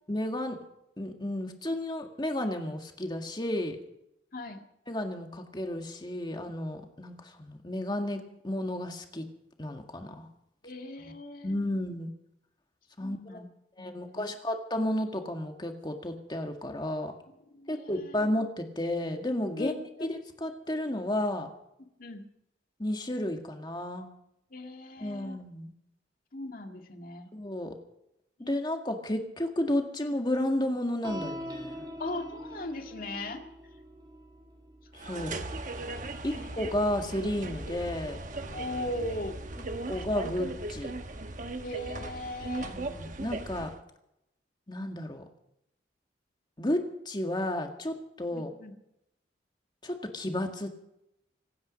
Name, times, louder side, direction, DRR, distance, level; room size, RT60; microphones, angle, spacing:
voice 1, 0.1-0.6 1.0-3.8 4.9-9.3 9.6-10.3 11.0-11.1 11.4-12.1 13.0-13.4 13.8-17.1 17.7-19.7 20.0-21.5 22.8-24.1 25.0-25.7 27.3-27.8 28.5-31.8 34.9-35.3 36.2-38.2 39.9-40.9 42.7-43.7 44.7-45.2 46.6-48.5 49.8-50.8, left 1 dB, 25° left, 4 dB, 1.9 m, -32 dB
voice 2, 10.6-11.6 13.0-13.5 13.8-14.3 17.5-18.2 19.6-20.1 22.0-22.2 24.5-25.4 26.3-27.3 28.4-28.6 32.0-33.4 35.1-35.4 35.8-35.9 36.2-36.6 38.5-39.4 39.9-40.3 41.6-42.8 48.3-48.7, left 1 dB, 50° left, 4 dB, 2.1 m, -39 dB
sound 1, 31.0-37.7, equal, 25° right, 1.9 m, -44 dB
sound 2, 35.0-43.8, right 2 dB, 45° right, 1.1 m, -38 dB
25.5 x 9.7 x 5.2 m, 0.81 s
head